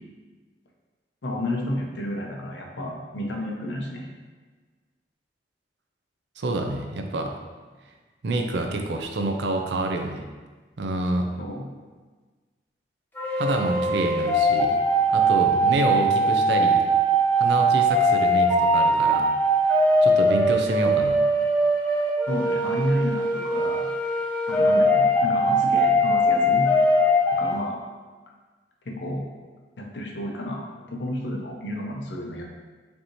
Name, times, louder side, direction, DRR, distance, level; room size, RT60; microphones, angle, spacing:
voice 1, 1.2-4.1 11.4-11.6 22.3-23.9 24.5-26.7 27.4-27.8 28.8-29.2 29.8-32.5, left 1 dB, 90° left, 0 dB, 0.7 m, -31 dB
voice 2, 6.4-7.3 8.2-10.2 10.8-11.3 13.4-14.8 15.1-16.8 17.4-19.2 20.0-21.2, right 2 dB, 80° right, 3 dB, 0.5 m, -27 dB
sound 1, 13.1-27.5, right 1 dB, 10° left, 0.6 m, -21 dB
5.2 x 2.8 x 3.0 m, 1.3 s
head